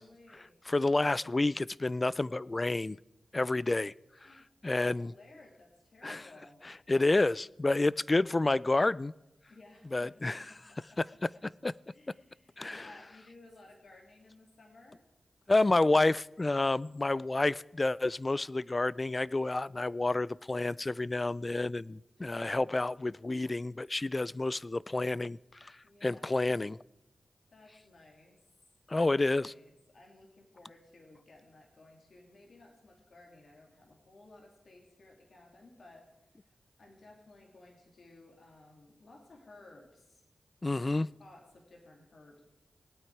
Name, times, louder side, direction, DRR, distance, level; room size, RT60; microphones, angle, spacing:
voice 1, 0.0-0.5 4.2-6.6 9.5-11.2 11.9-15.0 25.8-26.4 27.5-28.4 29.1-36.1 36.4-40.3 41.2-42.4, left 2 dB, 70° left, 1 dB, 2.8 m, -57 dB
voice 2, 0.7-3.0 3.3-3.9 4.2-5.1 6.0-6.2 6.9-9.1 9.9-10.5 11.6-11.7 12.6-12.9 15.5-25.7 26.0-26.8 28.9-29.5 40.6-41.1, left 2 dB, 35° left, 21 dB, 0.3 m, -29 dB
19.0 x 9.0 x 4.7 m, 0.93 s
cardioid pair, 40°, 0 cm